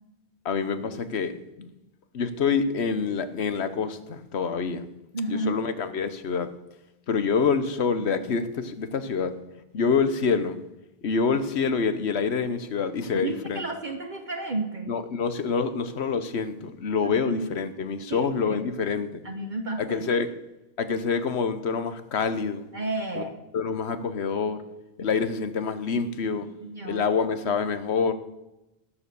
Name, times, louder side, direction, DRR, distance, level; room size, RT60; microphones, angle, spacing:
voice 1, 0.4-1.3 1.6-1.7 2.1-4.9 5.3-6.5 7.1-9.4 9.7-10.6 11.0-13.6 14.9-19.2 19.8-20.3 20.8-22.7 23.1-23.2 23.5-24.6 25.0-26.5 26.8-28.1, left 5 dB, 85° left, 11 dB, 1.2 m, -26 dB
voice 2, 5.1-5.6 13.1-14.9 17.0-17.5 18.1-18.6 19.2-20.1 22.7-23.4 26.4-27.0, right 2 dB, 50° right, 3 dB, 1.3 m, -32 dB
18.5 x 7.1 x 7.0 m, 0.96 s
omnidirectional pair, 1.1 m